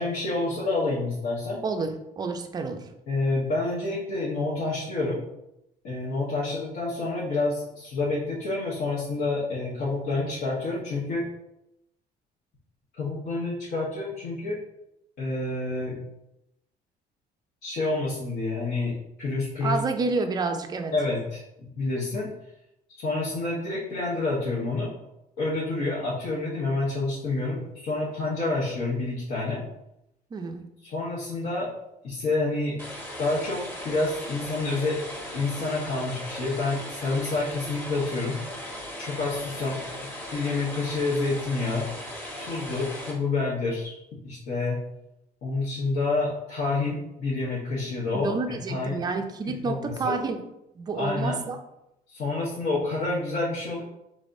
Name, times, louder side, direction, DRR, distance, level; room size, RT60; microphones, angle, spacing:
voice 1, 0.0-1.6 3.1-5.2 5.8-11.2 13.0-14.6 15.2-16.0 17.6-18.9 19.2-19.8 20.9-22.3 22.9-24.9 25.4-29.6 30.8-31.7 32.0-32.8 33.2-35.0 35.3-38.4 39.0-39.8 40.3-41.8 42.4-44.0 44.2-44.8 45.4-49.0 49.6-49.7 50.0-50.1 50.9-51.4 52.1-53.8, left 3 dB, 60° left, -7 dB, 1.2 m, -28 dB
voice 2, 1.6-2.9 19.6-20.9 30.3-30.6 48.1-50.4 50.7-51.6, right 4 dB, 25° right, 6 dB, 0.4 m, -29 dB
sound 1, 32.8-43.1, left 1 dB, 10° left, 1.1 m, -38 dB
5.1 x 3.5 x 2.6 m, 0.85 s
cardioid pair, 145°, 17 cm